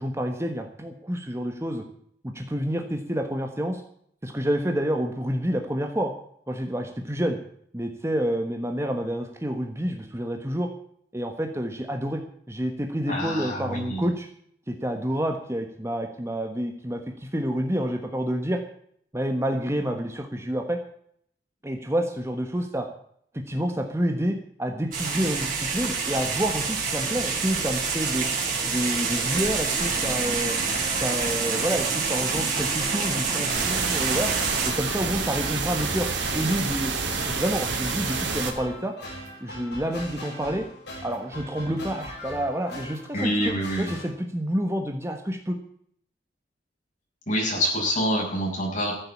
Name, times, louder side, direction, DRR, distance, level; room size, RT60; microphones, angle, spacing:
voice 1, 0.0-1.8 2.2-3.8 4.2-6.1 6.5-7.4 7.7-10.7 11.1-14.3 14.7-18.6 19.1-20.8 21.6-22.9 23.5-28.3 28.6-30.6 31.0-34.3 34.6-36.9 37.2-38.9 39.4-40.7 41.0-45.6, equal, 15° right, 4 dB, 1.3 m, -28 dB
voice 2, 13.1-14.0 43.1-43.9 47.3-48.9, equal, 40° left, -2 dB, 7.2 m, -26 dB
sound 1, 24.9-34.7, right 5 dB, 45° right, 4.8 m, -27 dB
sound 2, 29.3-44.1, equal, 65° left, 6.3 m, -40 dB
sound 3, 33.5-38.5, right 4 dB, 75° right, 3.1 m, -28 dB
14.0 x 8.0 x 8.4 m, 0.66 s
head